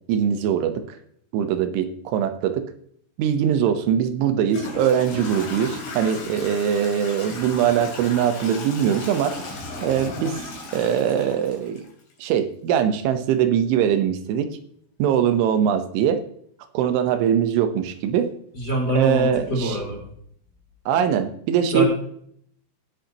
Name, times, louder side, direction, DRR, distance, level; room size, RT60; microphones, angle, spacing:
voice 1, 0.1-1.0 1.3-2.6 3.2-9.3 9.8-10.4 10.7-11.8 12.2-14.5 15.0-16.2 16.7-18.3 19.0-19.8 20.9-21.9, right 8 dB, 90° right, 9 dB, 3.5 m, -22 dB
Toilet flush / Trickle dribble, 3.7-3.8 4.5-12.3, left 3 dB, 60° left, 4.6 m, -36 dB
voice 2, 18.5-20.0 21.7-21.9, right 1 dB, 25° left, -3 dB, 4.5 m, -24 dB
18.5 x 8.0 x 2.9 m, 0.65 s
omnidirectional pair, 5.3 m